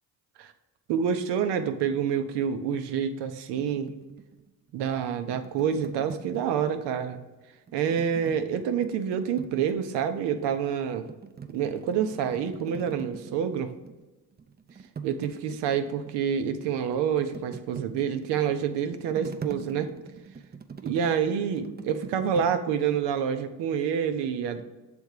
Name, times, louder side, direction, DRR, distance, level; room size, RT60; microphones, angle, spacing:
voice 1, 0.9-3.9 4.7-7.2 7.7-11.0 11.5-13.7 15.0-19.9 20.8-24.6, right 8 dB, 85° right, 8 dB, 0.7 m, -27 dB
sound 1, 3.6-7.0 7.7-10.4 10.8-14.1 14.3-22.6, right 6 dB, 25° right, 0.5 m, -43 dB
6.7 x 3.5 x 4.7 m, 1.1 s
supercardioid pair, 60°, 40 cm